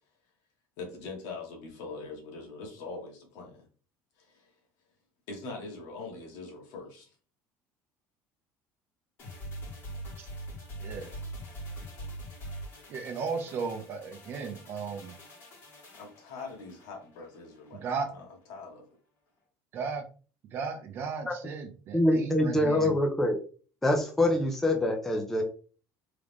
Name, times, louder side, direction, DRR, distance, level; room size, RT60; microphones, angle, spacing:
voice 1, 0.8-3.7 4.2-4.5 5.3-7.1 16.0-19.0, left 3 dB, 75° left, 1.6 m, -43 dB
sound 1, 9.2-17.8 18.1-18.2, right 1 dB, 40° left, 2.4 m, -43 dB
voice 2, 12.9-15.1 17.8-18.1 19.7-20.0 20.5-22.9, right 5 dB, 35° right, 0.8 m, -35 dB
voice 3, 21.9-23.4 23.8-25.4, left 1 dB, 5° left, 0.5 m, -25 dB
3.8 x 3.2 x 3.5 m
cardioid pair, 180°, 6 cm